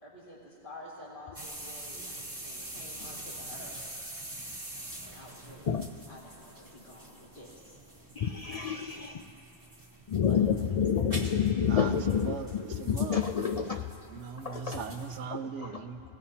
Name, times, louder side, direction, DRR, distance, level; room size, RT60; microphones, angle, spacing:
voice 1, 0.0-3.8 5.0-5.8 6.1-7.8 10.3-10.5, left 1 dB, 45° left, -9 dB, 2.3 m, -49 dB
sound 1, 1.3-15.2, right 1 dB, 20° right, 1.4 m, -45 dB
voice 2, 8.2-9.3 10.1-13.9 14.4-14.8, left 8 dB, 75° left, 4 dB, 0.3 m, -28 dB
voice 3, 11.6-13.5 14.1-16.0, right 5 dB, 80° right, 8 dB, 1.0 m, -39 dB
21.0 x 16.5 x 2.8 m, 2.7 s
omnidirectional pair, 1.2 m